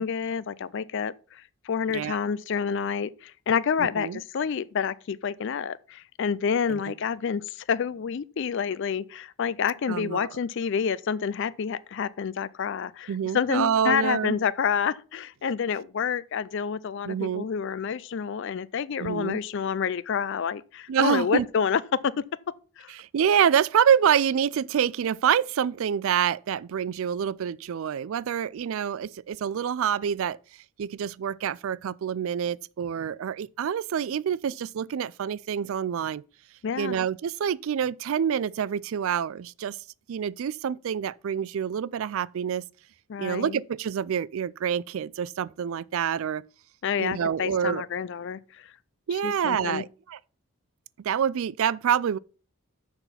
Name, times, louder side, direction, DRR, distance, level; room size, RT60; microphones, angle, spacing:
voice 1, 0.0-22.2 22.8-22.9 36.6-37.0 43.1-43.6 46.8-48.7 49.1-49.8, left 6 dB, 55° left, 0.4 m, -28 dB
voice 2, 3.8-4.2 6.7-6.8 9.9-10.3 13.1-14.4 17.0-17.4 19.0-19.4 20.9-21.5 23.0-30.4 30.8-36.2 36.8-39.8 40.1-42.6 43.2-46.4 47.0-47.8 49.1-50.2 51.0-52.2, right 8 dB, 65° right, 0.3 m, -27 dB
6.9 x 5.9 x 5.6 m
head